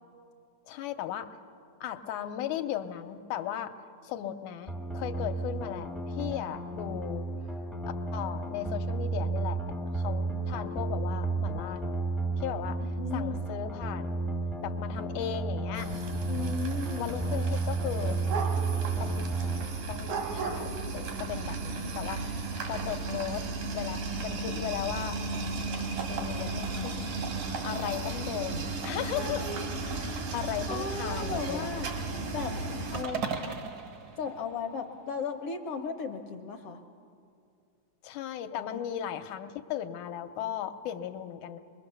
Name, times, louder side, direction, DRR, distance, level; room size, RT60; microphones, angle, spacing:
voice 1, 0.7-1.3 1.8-3.7 4.0-7.3 8.1-12.0 12.4-12.8 13.1-14.2 14.6-15.9 17.0-18.2 19.0-19.6 19.9-23.5 23.7-25.2 25.8-27.1 27.6-29.5 29.9-31.7 38.0-41.6, left 10 dB, 85° left, 7 dB, 2.2 m, -37 dB
sound 1, 4.7-19.6, right 3 dB, ahead, 0.4 m, -32 dB
voice 2, 12.8-13.4 16.3-17.1 30.7-31.9 32.3-32.5 32.9-33.6 34.1-36.8 38.7-38.8, left 5 dB, 65° left, 5 dB, 1.5 m, -36 dB
sound 2, 15.7-33.0, right 3 dB, 85° right, 3.5 m, -35 dB
sound 3, 32.9-35.3, right 6 dB, 65° right, 1.0 m, -38 dB
25.0 x 21.0 x 6.8 m, 2.4 s
omnidirectional pair, 3.5 m